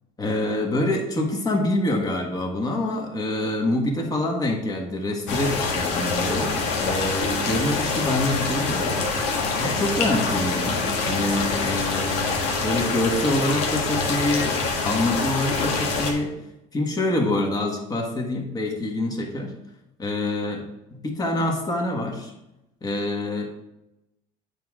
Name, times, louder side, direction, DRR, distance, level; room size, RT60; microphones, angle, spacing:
voice 1, 0.2-9.0 9.6-14.6 14.8-16.3 16.7-19.5 20.0-20.6 21.0-22.3 22.8-23.5, left 1 dB, 20° left, 1 dB, 1.5 m, -26 dB
sound 1, 5.3-16.1, left 4 dB, 80° left, 1.5 m, -25 dB
8.8 x 4.9 x 3.7 m, 0.90 s
cardioid pair, 130°, 17 cm